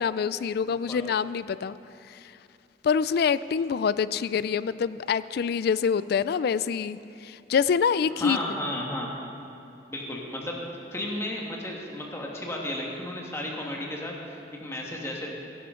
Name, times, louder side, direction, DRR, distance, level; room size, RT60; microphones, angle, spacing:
voice 1, 0.0-1.8 2.8-7.0 7.2-8.4, left 6 dB, 60° left, 16 dB, 0.3 m, -25 dB
voice 2, 0.6-1.0 8.1-9.1 9.9-15.4, left 1 dB, 15° left, -1 dB, 1.6 m, -34 dB
17.0 x 11.0 x 3.7 m, 2.6 s
head